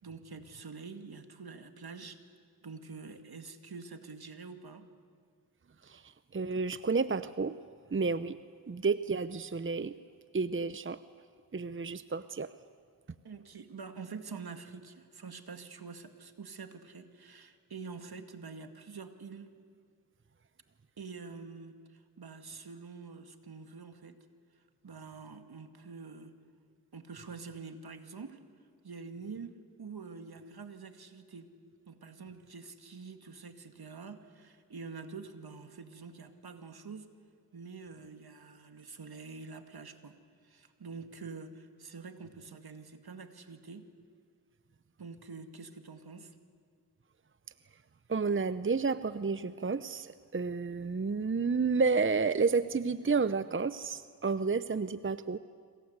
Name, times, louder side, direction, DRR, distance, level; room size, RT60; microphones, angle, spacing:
voice 1, 0.0-2.2 2.6-4.9 13.2-19.5 21.0-24.2 24.8-26.3 26.9-28.4 28.8-31.5 31.9-37.1 37.5-40.2 40.4-43.9 45.0-46.4, right 4 dB, 65° right, 7 dB, 2.2 m, -46 dB
voice 2, 6.3-7.6 7.9-8.4 8.7-9.9 10.3-11.0 11.5-12.5 48.1-55.4, right 4 dB, 30° right, 14 dB, 0.8 m, -30 dB
27.5 x 25.5 x 8.2 m, 2.1 s
cardioid pair, 40°, 40 cm